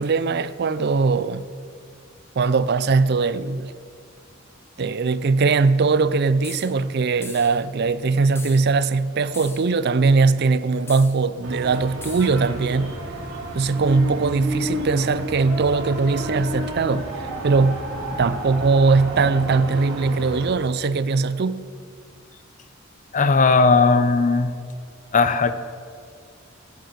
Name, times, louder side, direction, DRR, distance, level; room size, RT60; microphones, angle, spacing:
voice 1, 0.0-1.5 2.4-3.7 4.8-13.0 13.5-17.1 17.4-17.8 18.2-21.7, right 4 dB, 50° right, 0.5 m, -20 dB
sound 1, 6.4-6.7 7.2-7.6 8.4-8.6 9.3-9.7 10.9-11.2 12.0-12.4, left 3 dB, 10° left, 1.2 m, -39 dB
sound 2, 11.4-20.5, equal, 85° right, 2.5 m, -31 dB
voice 2, 23.1-24.6 25.1-25.5, left 4 dB, 35° left, 0.6 m, -17 dB
10.5 x 10.5 x 6.6 m
head